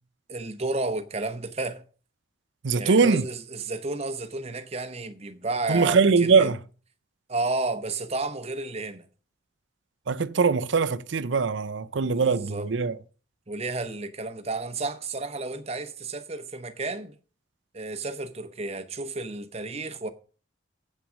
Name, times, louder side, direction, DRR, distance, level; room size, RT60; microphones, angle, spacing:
voice 1, 0.3-1.8 2.7-6.5 7.3-9.1 12.0-12.7 13.5-17.2 17.7-20.1, right 3 dB, 35° right, 0.9 m, -32 dB
voice 2, 2.6-3.2 5.7-6.6 10.1-13.0, right 4 dB, 80° right, 0.6 m, -22 dB
8.5 x 6.0 x 6.3 m
head